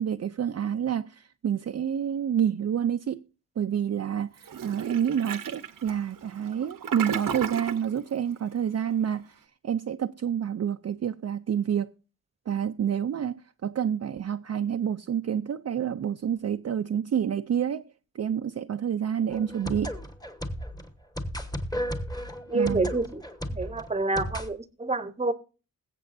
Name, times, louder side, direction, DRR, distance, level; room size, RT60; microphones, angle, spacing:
voice 1, 0.0-3.2 3.6-11.9 12.5-17.9 18.1-19.9 22.5-22.9, right 8 dB, 50° right, 0.4 m, -28 dB
Toilet flush, 4.4-7.9, right 7 dB, 75° right, 0.9 m, -35 dB
sound 1, 19.3-24.5, equal, 10° left, 1.1 m, -34 dB
voice 2, 22.5-23.2 23.5-25.3, right 3 dB, 20° right, 0.8 m, -28 dB
21.0 x 8.1 x 2.6 m
wide cardioid pair, 160°, 33 cm